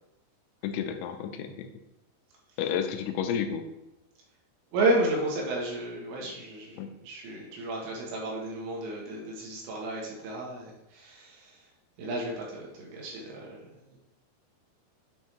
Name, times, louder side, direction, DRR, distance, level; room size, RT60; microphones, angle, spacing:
voice 1, 0.6-1.7 2.6-3.7 6.8-6.9, left 8 dB, 85° left, 7 dB, 2.9 m, -31 dB
voice 2, 4.7-11.7 12.0-14.0, right 2 dB, 85° right, -3 dB, 4.0 m, -32 dB
8.5 x 3.5 x 4.5 m, 0.90 s
omnidirectional pair, 5.1 m